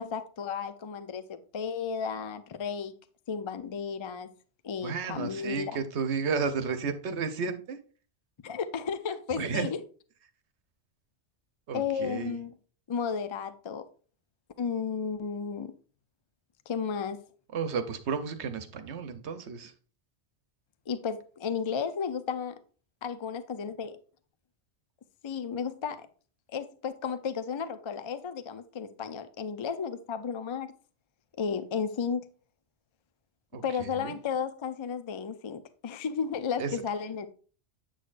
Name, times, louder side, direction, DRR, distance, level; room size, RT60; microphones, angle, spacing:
voice 1, 0.0-2.9 3.3-4.3 4.6-5.8 8.4-9.8 11.7-12.5 12.9-13.9 14.6-15.7 16.7-17.2 20.9-22.6 23.0-24.0 25.2-26.1 26.5-30.7 31.4-32.3 33.6-37.3, left 6 dB, 40° left, 0.4 m, -33 dB
voice 2, 4.8-7.8 9.4-9.7 11.7-12.4 17.5-19.7 33.5-34.2 36.6-36.7, right 5 dB, 85° right, 1.1 m, -32 dB
8.2 x 6.3 x 2.5 m
omnidirectional pair, 1.1 m